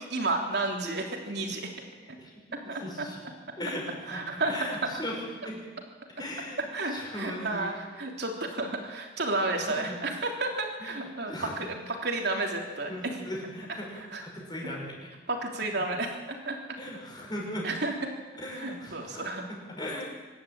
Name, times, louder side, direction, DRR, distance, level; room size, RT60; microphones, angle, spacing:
voice 1, 0.1-1.6 2.7-2.8 4.1-4.5 6.7-12.9 14.1-14.2 15.3-16.1 16.4-16.5 17.6-17.9 18.6-19.4, right 2 dB, 60° right, 2 dB, 3.4 m, -31 dB
voice 2, 2.0-3.2 3.6-5.6 6.2-7.7 9.7-10.0 10.8-11.7 12.9-15.1 16.8-17.7 18.4-20.1, left 1 dB, 25° left, -1 dB, 6.1 m, -39 dB
25.0 x 12.0 x 8.9 m, 1.3 s
head